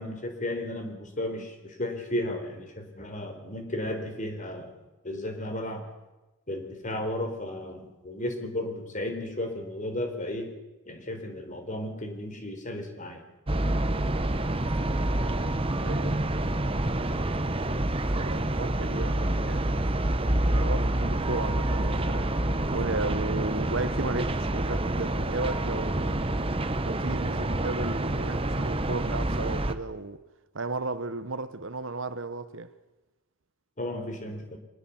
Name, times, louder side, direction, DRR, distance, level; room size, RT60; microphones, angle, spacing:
voice 1, 0.0-4.7 5.0-5.8 6.5-10.5 10.9-13.2 33.8-34.6, left 1 dB, 35° left, 3.9 m, -34 dB
sound 1, 13.5-29.7, right 1 dB, 25° right, 1.1 m, -27 dB
voice 2, 15.1-16.2 18.2-19.7 20.2-22.3 22.7-26.3 26.8-30.2 30.5-32.7, right 3 dB, 60° right, 1.1 m, -35 dB
24.5 x 19.5 x 7.2 m
head